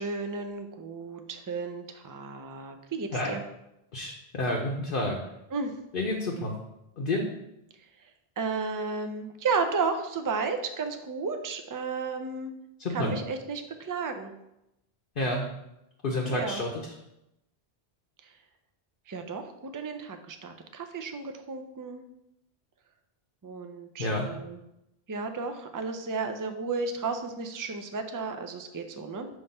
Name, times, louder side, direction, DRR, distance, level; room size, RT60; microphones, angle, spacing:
voice 1, 0.0-3.4 5.5-5.8 8.4-12.5 12.9-14.3 16.3-16.6 18.2-18.3 19.1-22.0 23.4-24.6 25.1-29.3, right 4 dB, 30° right, 6 dB, 0.3 m, -33 dB
voice 2, 3.9-5.2 5.9-6.6 7.0-7.2 12.8-13.1 15.2-15.5 16.0-16.7 24.0-24.3, left 1 dB, 60° left, 0 dB, 0.9 m, -29 dB
5.8 x 3.3 x 5.4 m, 0.87 s
omnidirectional pair, 1.1 m